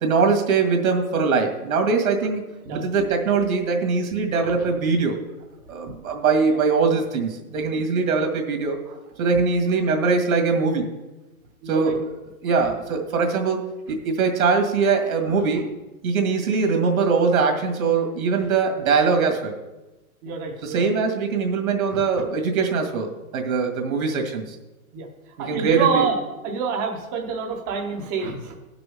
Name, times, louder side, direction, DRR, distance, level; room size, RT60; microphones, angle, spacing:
voice 1, 0.0-5.2 5.7-8.8 9.2-10.8 11.7-12.1 12.4-15.7 16.0-19.5 20.6-24.4 25.4-26.1, right 4 dB, 75° right, 3 dB, 2.0 m, -22 dB
voice 2, 11.6-11.9 18.4-18.5 20.2-20.9 21.9-22.0 24.9-25.1 25.4-26.2 26.4-28.6, right 5 dB, 15° right, 2 dB, 0.6 m, -27 dB
17.0 x 6.0 x 3.5 m, 1.1 s
hypercardioid pair, 170°, 42 cm